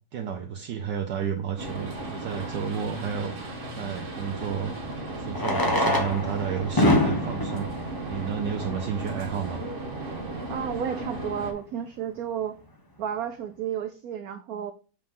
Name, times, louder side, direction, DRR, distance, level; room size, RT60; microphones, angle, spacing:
voice 1, 0.1-3.3 3.8-4.8 5.2-9.6, right 7 dB, 70° right, 1.3 m, -31 dB
sound 1, 1.6-11.5, right 2 dB, 30° right, 1.3 m, -35 dB
Fireworks, 1.7-1.8 4.1-4.2 5.3-9.0 9.8-9.9 10.1-10.2 10.4-10.5 11.0-11.2, left 1 dB, 15° left, 0.8 m, -26 dB
voice 2, 10.5-12.6 13.0-14.7, right 8 dB, 90° right, 0.7 m, -32 dB
7.4 x 4.3 x 3.7 m
omnidirectional pair, 2.1 m